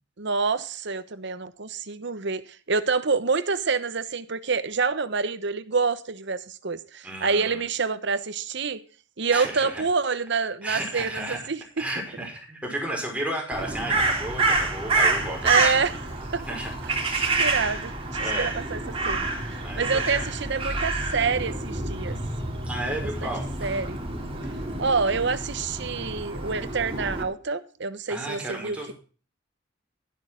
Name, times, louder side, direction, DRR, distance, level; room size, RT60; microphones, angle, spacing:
voice 1, 0.2-8.8 9.2-11.8 15.4-16.0 16.3-16.4 17.4-18.8 19.1-22.2 23.2-23.3 23.6-24.0 24.8-28.9, right 4 dB, 65° right, 1.0 m, -27 dB
voice 2, 7.0-7.6 9.3-9.8 10.6-11.4 11.8-15.8 16.5-16.7 17.0-17.3 18.2-18.5 19.5-20.3 22.7-23.5 28.1-28.9, right 1 dB, 5° right, 5.3 m, -33 dB
Crow, 13.5-27.2, right 3 dB, 30° right, 3.2 m, -28 dB
12.5 x 12.0 x 3.8 m
head